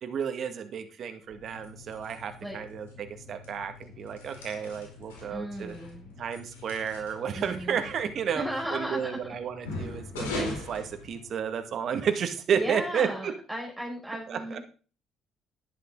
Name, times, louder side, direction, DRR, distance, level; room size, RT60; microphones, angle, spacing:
voice 1, 0.0-5.8 6.2-8.4 8.7-13.3 14.3-14.6, right 7 dB, 55° right, 7 dB, 1.9 m, -32 dB
sound 1, 1.2-11.7, left 2 dB, 85° left, 4.6 m, -41 dB
voice 2, 5.3-6.2 7.3-7.8 8.3-9.1 12.5-14.6, equal, 5° right, -2 dB, 6.0 m, -35 dB
12.5 x 11.0 x 3.9 m, 0.37 s
hypercardioid pair, 55°, 0 cm